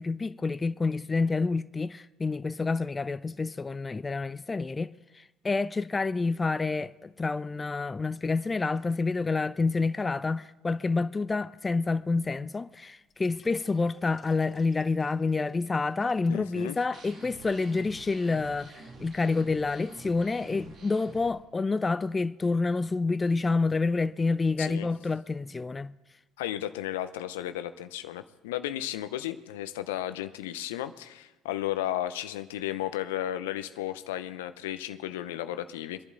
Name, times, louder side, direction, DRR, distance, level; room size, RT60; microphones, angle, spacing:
voice 1, 0.0-25.9, left 3 dB, 25° left, 0.4 m, -28 dB
sound 1, 12.6-12.7 13.1-16.7 17.2-17.3 17.8-17.9, left 5 dB, 40° left, 2.8 m, -58 dB
voice 2, 16.3-16.8 24.6-24.9 26.4-36.0, left 13 dB, 80° left, 0.7 m, -34 dB
sound 2, 16.9-21.3, right 3 dB, 50° right, 2.5 m, -48 dB
23.0 x 11.0 x 4.0 m
hypercardioid pair, 60°, 0 cm